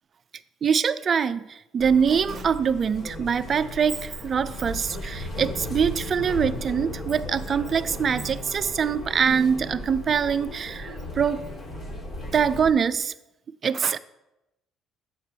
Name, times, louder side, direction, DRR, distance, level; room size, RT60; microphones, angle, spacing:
voice 1, 0.6-11.5 12.3-13.1 13.6-14.0, right 7 dB, 45° right, 0.4 m, -24 dB
sound 1, 1.8-12.7, left 1 dB, 50° left, 2.5 m, -36 dB
9.1 x 7.4 x 2.8 m
supercardioid pair, 90°, 0 cm